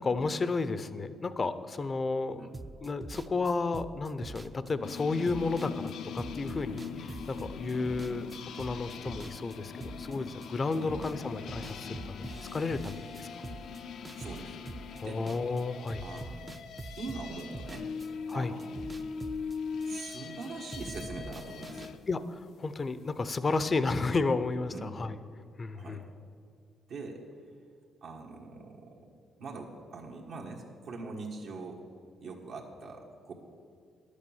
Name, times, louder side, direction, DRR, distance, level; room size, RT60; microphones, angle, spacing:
voice 1, 0.0-2.5 2.8-8.3 8.5-12.3 12.5-13.3 15.0-16.0 18.3-18.5 22.1-25.2 25.6-26.0, left 3 dB, 35° left, 13 dB, 0.6 m, -32 dB
sound 1, 2.5-10.5 10.7-11.2 11.5-15.6 15.9-20.5 20.7-21.9, right 2 dB, 20° right, 0.5 m, -44 dB
sound 2, 4.8-22.0, left 6 dB, 70° left, 0.6 m, -41 dB
voice 2, 14.1-14.7 15.0-15.2 16.0-16.5 17.0-17.9 18.3-18.8 19.8-21.9 24.7-24.9 25.7-26.2 26.9-27.2 28.0-29.1 29.4-31.8 32.2-33.3, right 3 dB, 70° right, -3 dB, 1.5 m, -42 dB
11.0 x 8.3 x 7.1 m, 2.3 s
cardioid pair, 90°, 0 cm